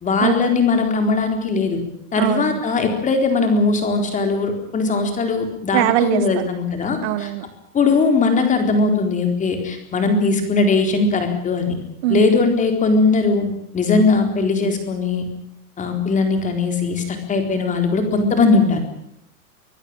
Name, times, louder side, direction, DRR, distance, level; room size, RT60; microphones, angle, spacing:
voice 1, 0.0-1.8 2.1-7.3 7.7-11.7 12.1-13.5 13.7-15.2 15.8-18.8, left 3 dB, 15° left, 5 dB, 4.1 m, -19 dB
voice 2, 2.2-2.6 5.7-6.2 7.0-7.4 12.0-12.5, right 13 dB, 45° right, 13 dB, 1.3 m, -21 dB
25.0 x 16.0 x 8.9 m, 0.73 s
supercardioid pair, 155°, 45 cm